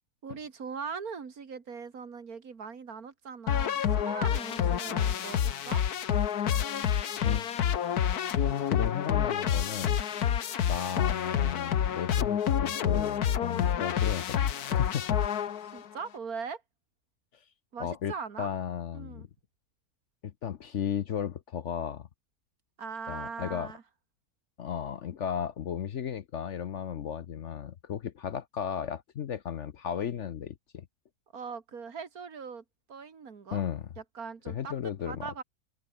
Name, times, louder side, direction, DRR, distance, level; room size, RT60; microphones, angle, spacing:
voice 1, 0.2-5.8 15.7-16.6 17.7-18.5 18.9-19.3 22.8-23.8 31.3-33.6 34.0-34.7 35.1-35.4, right 5 dB, 70° right, 2.4 m, -40 dB
sound 1, 3.5-15.9, left 9 dB, 75° left, 1.7 m, -28 dB
voice 2, 7.2-7.5 8.2-8.4 8.7-10.0 10.7-15.2 17.8-19.3 20.2-22.1 23.1-23.7 24.6-30.9 33.5-33.9 34.5-35.3, left 8 dB, 55° left, 1.0 m, -35 dB
open air
omnidirectional pair, 1.6 m